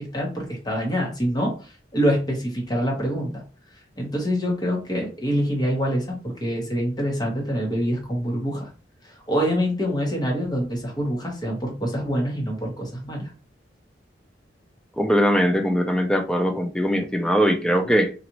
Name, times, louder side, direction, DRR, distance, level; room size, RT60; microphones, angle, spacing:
voice 1, 0.0-3.4 4.0-8.7 9.3-13.3, equal, 25° left, 1.1 m, -25 dB
voice 2, 15.0-18.1, equal, 5° left, 0.5 m, -21 dB
4.0 x 2.5 x 3.0 m
head